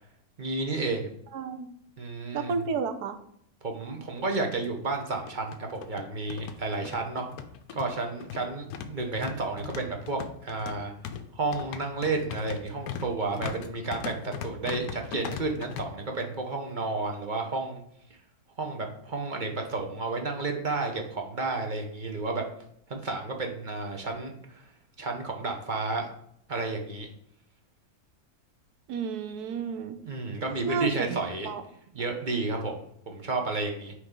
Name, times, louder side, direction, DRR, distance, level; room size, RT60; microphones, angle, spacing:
voice 1, 0.4-1.1 2.0-2.5 3.6-7.3 7.7-10.9 11.3-17.8 18.6-22.4 22.9-24.6 25.0-26.1 26.5-27.1 30.0-31.6 31.9-33.9, right 3 dB, 40° right, 2 dB, 0.8 m, -31 dB
voice 2, 1.3-1.7 2.3-3.2 28.9-30.0 30.6-31.2 31.5-31.6, right 5 dB, 85° right, 9 dB, 1.2 m, -31 dB
sound 1, 3.8-3.9 4.2-4.3 5.1-15.8, left 7 dB, 75° left, 1.0 m, -39 dB
9.1 x 3.2 x 3.7 m, 0.70 s
omnidirectional pair, 1.6 m